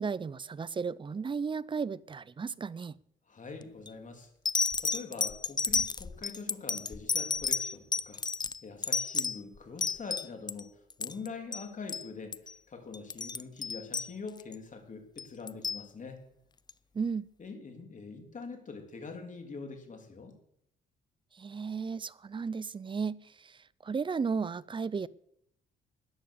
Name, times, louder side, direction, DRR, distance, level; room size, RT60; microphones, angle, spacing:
voice 1, 0.0-2.9 16.9-17.3 21.3-25.1, right 5 dB, 25° right, 0.5 m, -34 dB
voice 2, 3.3-4.3 4.8-8.2 8.6-16.2 17.4-20.3, left 4 dB, 40° left, 3.4 m, -44 dB
sound 1, 3.6-3.9 4.4-10.6 10.9-11.3 11.5-11.6 11.9-12.1 12.3-12.5 12.9-14.5 15.2-15.8 16.7-16.8, left 4 dB, 20° left, 0.5 m, -32 dB
13.5 x 10.0 x 6.6 m
cardioid pair, 90°, 20 cm